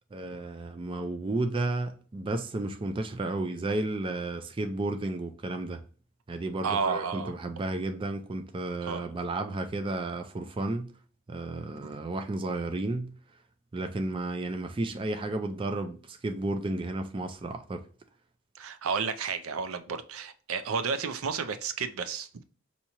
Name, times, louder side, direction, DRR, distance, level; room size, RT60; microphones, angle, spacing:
voice 1, 0.1-5.8 6.3-10.9 11.3-13.1 13.7-17.8, right 2 dB, 25° right, 0.4 m, -32 dB
voice 2, 6.6-7.3 8.8-9.1 11.8-12.0 18.5-22.4, right 5 dB, 80° right, 0.5 m, -32 dB
5.8 x 2.8 x 2.9 m
head